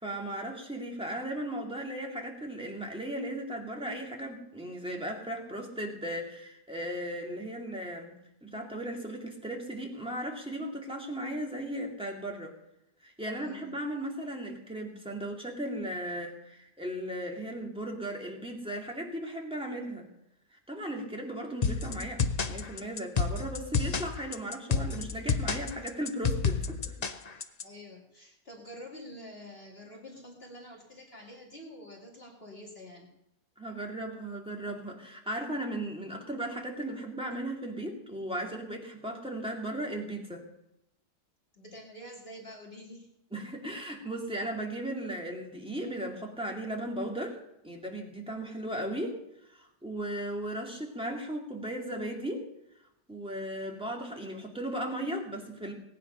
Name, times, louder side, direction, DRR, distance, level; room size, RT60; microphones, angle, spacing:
voice 1, 0.0-8.1 8.4-12.5 13.0-20.1 20.5-22.2 22.5-27.0 33.6-40.4 43.3-47.4 47.6-49.2 49.5-52.5 53.1-55.7, right 1 dB, 5° right, 0 dB, 2.4 m, -36 dB
voice 2, 13.3-13.7 27.6-33.1 41.5-43.1 53.2-53.4, left 1 dB, 35° left, -2 dB, 2.5 m, -47 dB
sound 1, 21.6-27.6, left 5 dB, 55° left, 0.4 m, -29 dB
19.0 x 9.3 x 5.6 m, 0.81 s
omnidirectional pair, 1.9 m